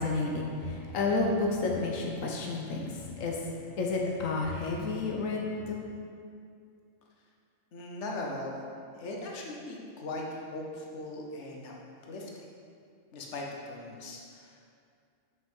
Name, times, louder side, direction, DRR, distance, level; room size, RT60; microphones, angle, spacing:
voice 1, 0.0-5.9, left 3 dB, 90° left, 0 dB, 1.2 m, -31 dB
voice 2, 7.7-8.6 8.9-11.7 12.1-12.5 13.1-14.6, left 2 dB, 65° left, -1 dB, 1.2 m, -39 dB
5.7 x 5.4 x 5.4 m, 2.3 s
omnidirectional pair, 1.3 m